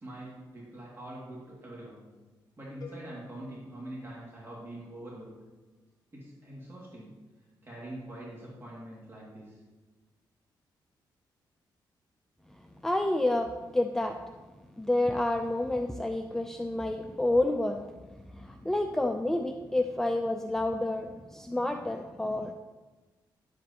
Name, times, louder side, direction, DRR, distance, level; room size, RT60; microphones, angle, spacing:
voice 1, 0.0-2.0 2.6-5.3 6.1-7.1 7.6-9.6, right 1 dB, 30° right, -6 dB, 2.2 m, -44 dB
sound 1, 2.8-4.9, left 3 dB, 50° left, 1.3 m, -52 dB
voice 2, 12.8-14.2 14.8-17.8 18.3-22.5, left 1 dB, 5° left, 5 dB, 0.4 m, -29 dB
10.5 x 7.7 x 2.9 m, 1.2 s
cardioid pair, 105°, 8 cm